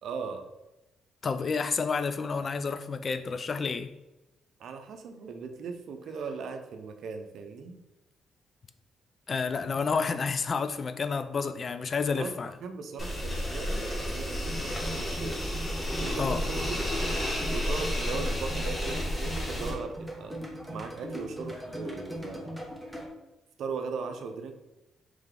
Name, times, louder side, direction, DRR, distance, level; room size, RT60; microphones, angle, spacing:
voice 1, 0.0-0.5 4.6-7.8 12.2-12.3 12.6-15.4 16.0-16.8 17.5-20.4 20.7-22.6 23.6-24.5, right 5 dB, 70° right, 6 dB, 0.5 m, -38 dB
voice 2, 1.2-3.9 9.3-12.5 16.2-16.4, left 5 dB, 45° left, 11 dB, 0.3 m, -30 dB
sound 1, 13.0-19.7, equal, 25° left, 1.2 m, -31 dB
sound 2, 14.3-23.1, equal, ahead, 0.9 m, -40 dB
3.6 x 3.3 x 3.3 m, 0.97 s
supercardioid pair, 65°, 0 cm